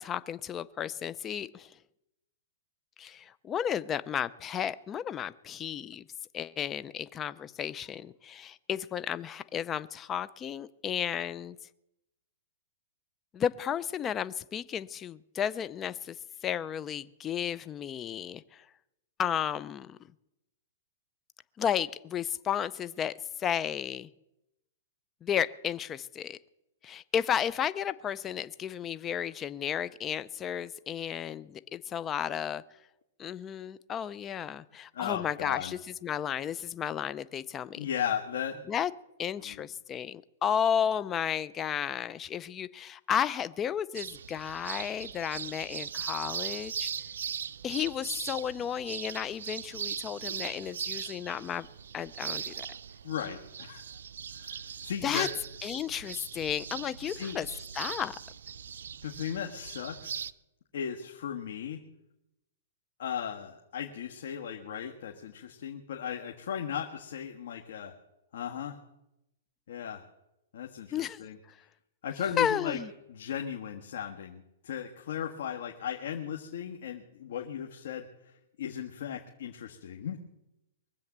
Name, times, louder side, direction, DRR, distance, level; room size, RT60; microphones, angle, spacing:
voice 1, 0.0-1.7 3.0-6.0 6.3-11.6 13.3-16.2 16.4-18.6 19.2-20.0 21.6-24.1 25.2-26.4 26.8-32.6 33.2-37.9 38.7-38.9 39.2-46.9 47.6-51.7 51.9-52.7 55.0-55.3 55.6-57.5 57.8-58.2 70.9-71.2 72.4-72.9, left 9 dB, 20° left, 16 dB, 0.5 m, -33 dB
voice 2, 34.9-35.7 37.8-38.6 39.4-39.6 53.0-53.8 54.3-55.3 57.1-57.4 59.0-60.2 60.7-61.8 63.0-67.9 68.3-68.8 69.7-70.0 70.5-71.4 72.0-72.8 73.1-80.2, left 8 dB, 70° left, 2 dB, 1.5 m, -36 dB
sound 1, 43.9-60.3, right 8 dB, 90° right, 0.5 m, -39 dB
22.5 x 7.8 x 7.4 m, 0.89 s
hypercardioid pair, 155°, 0 cm